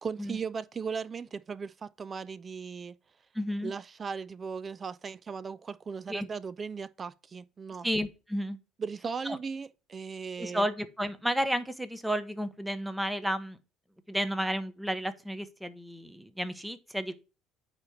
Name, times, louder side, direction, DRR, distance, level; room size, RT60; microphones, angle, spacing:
voice 1, 0.0-2.9 3.6-7.9 8.8-10.6, right 5 dB, 30° right, 0.4 m, -37 dB
voice 2, 3.3-3.7 6.1-6.3 7.8-8.6 9.2-9.4 10.4-13.6 14.1-17.1, equal, 5° right, 0.9 m, -32 dB
8.8 x 3.0 x 5.0 m
supercardioid pair, 95°, 0 cm